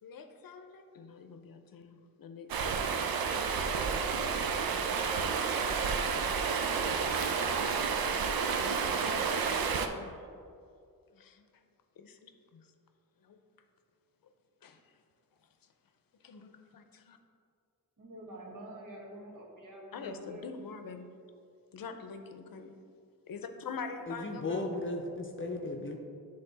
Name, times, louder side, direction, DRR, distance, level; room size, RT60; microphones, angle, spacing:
voice 1, 0.0-3.3 8.6-10.2 11.1-11.5 12.0-12.7 13.2-13.4 14.6-14.8 16.2-17.2 19.9-21.1 21.7-22.7 23.3-24.7, left 5 dB, 75° left, 7 dB, 0.6 m, -45 dB
Stream, 2.5-9.9, right 5 dB, 85° right, 0.5 m, -30 dB
voice 2, 18.0-20.5, right 1 dB, 65° right, -2 dB, 1.5 m, -47 dB
voice 3, 24.1-26.0, left 2 dB, 35° left, 1 dB, 0.6 m, -35 dB
10.0 x 3.4 x 3.9 m, 2.3 s
wide cardioid pair, 120°, 35 cm